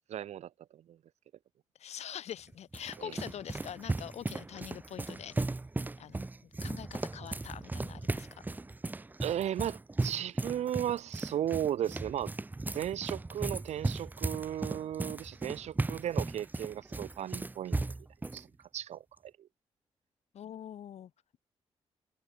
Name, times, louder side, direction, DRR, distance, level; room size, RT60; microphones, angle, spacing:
voice 1, 0.1-1.0 3.0-3.2 9.2-12.3 12.7-17.8 18.3-18.5 18.7-19.5, right 11 dB, 75° right, 0.7 m, -35 dB
voice 2, 1.8-5.4 6.0-8.4 20.3-21.1, left 10 dB, 75° left, 1.1 m, -44 dB
sound 1, 2.3-18.4, right 2 dB, 15° right, 0.4 m, -36 dB
cardioid pair, 60°, 11 cm